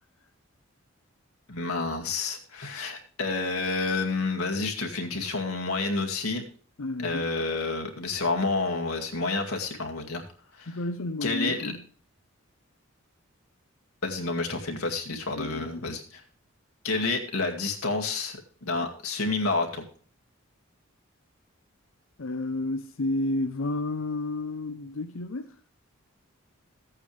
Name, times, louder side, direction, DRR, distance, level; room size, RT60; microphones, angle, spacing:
voice 1, 1.5-6.4 7.0-10.2 10.5-10.7 11.2-11.7 14.0-16.2 16.8-19.8, left 3 dB, 85° left, 2.2 m, -29 dB
voice 2, 6.8-7.2 10.6-11.8 15.3-15.9 22.2-25.6, left 2 dB, 70° left, 0.7 m, -31 dB
14.5 x 8.8 x 3.3 m
head